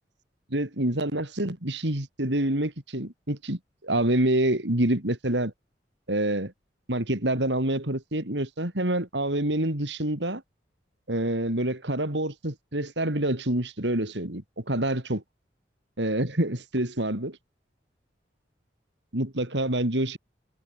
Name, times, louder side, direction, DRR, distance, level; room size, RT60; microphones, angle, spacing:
voice 1, 0.5-5.5 6.1-6.5 6.9-10.4 11.1-15.2 16.0-17.4 19.1-20.2, right 1 dB, 80° right, 4.0 m, -27 dB
head